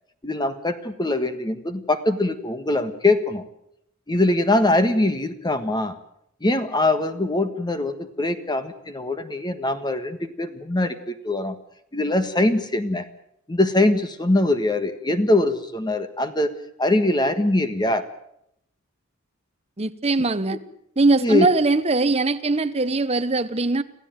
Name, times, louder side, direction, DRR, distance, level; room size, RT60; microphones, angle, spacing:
voice 1, 0.2-3.4 4.1-6.0 6.4-11.6 11.9-13.1 13.5-16.5 16.8-18.1 20.5-20.6 21.2-21.5, left 2 dB, 20° left, 1.5 m, -22 dB
voice 2, 19.8-20.6 21.0-23.8, right 3 dB, 30° right, 1.0 m, -21 dB
26.5 x 15.0 x 9.1 m
head